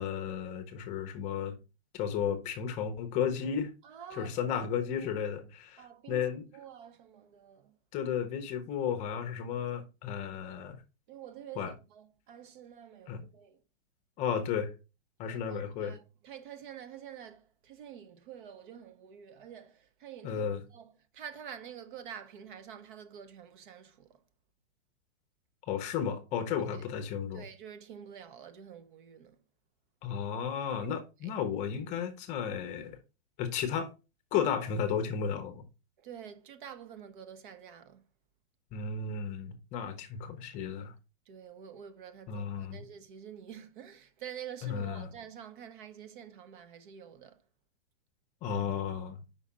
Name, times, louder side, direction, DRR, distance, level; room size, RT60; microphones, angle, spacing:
voice 1, 0.0-1.6 1.9-3.7 4.1-6.4 7.9-10.8 11.6-11.7 13.1-13.3 14.2-14.7 15.2-16.0 20.2-20.6 25.7-27.4 30.0-33.0 33.4-33.9 34.3-35.7 38.7-40.9 42.3-42.8 44.6-45.1 48.4-49.2, left 7 dB, 20° left, 0.7 m, -33 dB
voice 2, 3.8-4.6 5.0-5.1 5.8-6.3 6.5-7.8 11.1-13.6 15.2-20.5 20.7-24.2 26.6-26.7 27.3-29.4 31.2-31.3 36.0-38.0 41.3-47.4, right 8 dB, 50° right, 0.7 m, -48 dB
5.2 x 4.8 x 4.1 m
hypercardioid pair, 155°, 33 cm